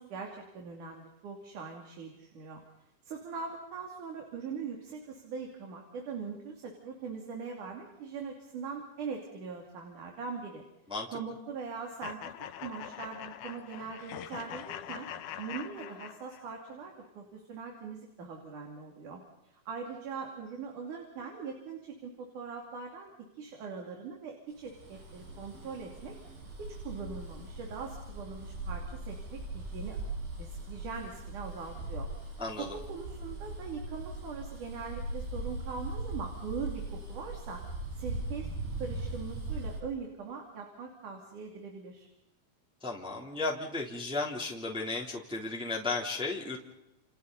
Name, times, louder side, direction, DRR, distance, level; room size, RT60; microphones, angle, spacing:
voice 1, 0.0-2.6 3.0-10.6 11.1-12.2 12.6-15.1 15.4-19.2 19.5-23.1 23.4-26.1 26.6-30.0 30.4-32.1 32.6-37.6 38.0-38.5 38.8-42.1, right 5 dB, 60° right, 1 dB, 4.3 m, -41 dB
sound 1, 12.0-16.6, left 10 dB, 70° left, 2.3 m, -43 dB
Bus, 24.7-39.8, right 2 dB, 85° right, 8.2 m, -40 dB
voice 2, 42.8-46.6, left 3 dB, ahead, -3 dB, 3.0 m, -34 dB
30.0 x 29.5 x 4.2 m, 0.85 s
omnidirectional pair, 4.1 m